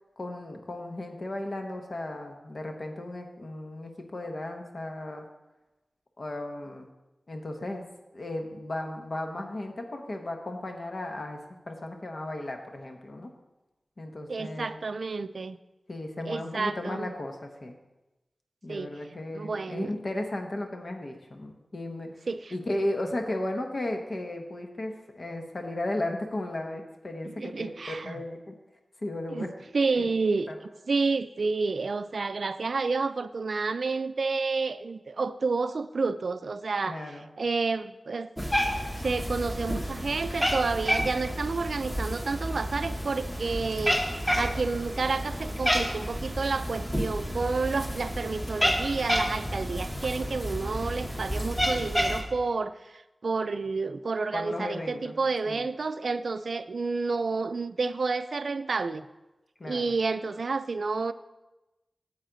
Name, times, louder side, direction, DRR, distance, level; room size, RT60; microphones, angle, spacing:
voice 1, 0.2-5.3 6.2-6.9 7.3-7.8 8.1-11.4 11.7-13.3 14.0-14.8 15.9-17.7 18.6-22.1 22.5-28.5 29.0-29.5 29.8-30.0 30.5-30.6 36.8-37.3 54.3-55.1 55.5-55.6 59.6-59.9, left 1 dB, 60° left, 3 dB, 1.0 m, -35 dB
voice 2, 14.3-15.6 16.3-17.1 18.7-18.9 19.3-19.9 22.3-22.5 27.4-28.2 29.3-29.5 29.7-30.5 30.9-38.3 39.0-59.1 59.6-61.1, right 4 dB, 75° right, 13 dB, 0.3 m, -30 dB
Cat, 38.4-52.2, equal, 10° left, 1.3 m, -30 dB
9.1 x 7.4 x 3.9 m, 1.0 s
cardioid pair, 50°, 0 cm